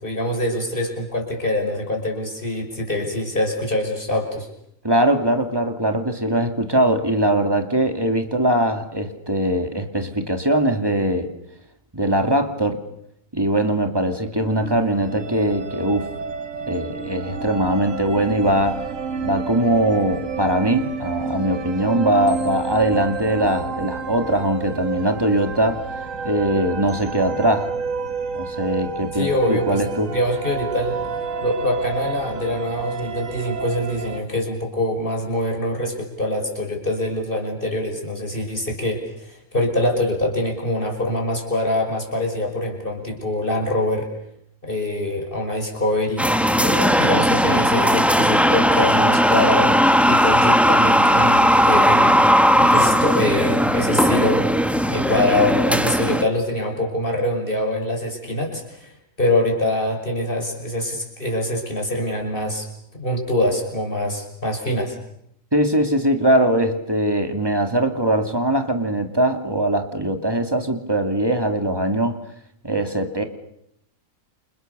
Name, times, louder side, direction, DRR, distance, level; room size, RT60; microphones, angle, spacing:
voice 1, 0.0-4.5 29.1-29.8 30.1-31.0 31.4-44.1 44.6-46.2 46.6-49.7 50.1-52.2 52.6-54.4 54.9-58.9 59.2-62.7 62.9-65.0, left 1 dB, 40° left, 1 dB, 6.2 m, -24 dB
voice 2, 4.8-11.3 11.9-12.8 13.3-16.1 16.7-18.8 19.2-25.9 26.2-27.7 28.3-30.1 65.5-72.2 72.6-73.2, right 1 dB, 15° right, 6 dB, 2.7 m, -21 dB
sound 1, 14.4-34.2, right 5 dB, 75° right, 2.0 m, -30 dB
sound 2, 46.2-56.2, equal, ahead, 1.6 m, -17 dB
29.5 x 28.0 x 6.9 m, 0.74 s
omnidirectional pair, 1.4 m